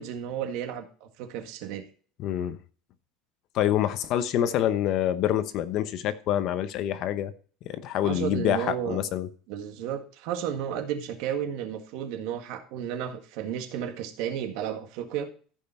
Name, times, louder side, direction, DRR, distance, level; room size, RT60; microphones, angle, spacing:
voice 1, 0.0-1.9 8.0-9.0 9.5-15.3, right 9 dB, 65° right, 1.8 m, -33 dB
voice 2, 2.2-2.6 3.5-7.3 7.6-9.3, left 11 dB, 50° left, 0.9 m, -26 dB
14.5 x 5.5 x 4.4 m
cardioid pair, 150°, 0 cm